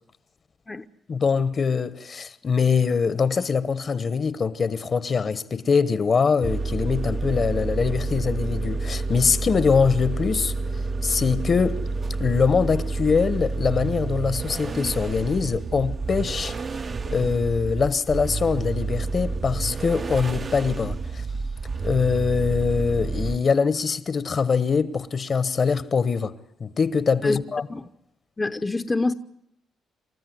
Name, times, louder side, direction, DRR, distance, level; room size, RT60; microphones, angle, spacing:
voice 1, 1.1-10.5 11.0-11.8 12.2-16.6 17.1-21.2 21.8-27.7, left 5 dB, 45° left, 1.1 m, -23 dB
sound 1, 6.4-23.4, right 3 dB, 40° right, 0.8 m, -29 dB
voice 2, 28.4-29.1, left 3 dB, 20° left, 0.8 m, -25 dB
28.5 x 13.5 x 9.4 m
cardioid pair, 90°, 0 cm